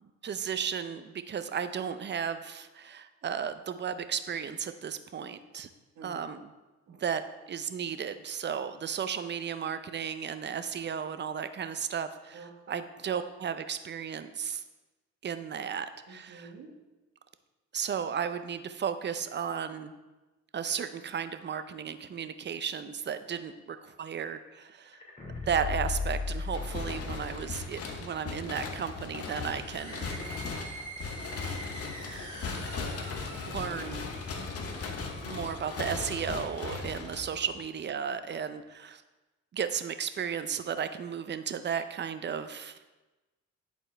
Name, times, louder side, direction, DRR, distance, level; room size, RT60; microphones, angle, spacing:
voice 1, 0.0-5.7 6.0-6.5 6.9-7.2 7.5-14.6 15.2-16.5 17.7-19.9 20.5-25.0 25.5-30.1 33.5-34.1 35.2-39.0 39.5-42.8, right 7 dB, 35° right, 11 dB, 0.5 m, -34 dB
voice 2, 16.1-16.7 34.3-35.3, right 4 dB, 80° right, 0 dB, 1.4 m, -50 dB
sound 1, 24.9-27.8 28.1-28.2, left 4 dB, 25° left, 2.1 m, -35 dB
sound 2, 26.5-37.7, left 4 dB, 50° left, 0.9 m, -38 dB
sound 3, 29.5-36.1, right 2 dB, 20° right, 2.3 m, -46 dB
11.0 x 4.4 x 3.3 m, 1.1 s
cardioid pair, 90°, 30 cm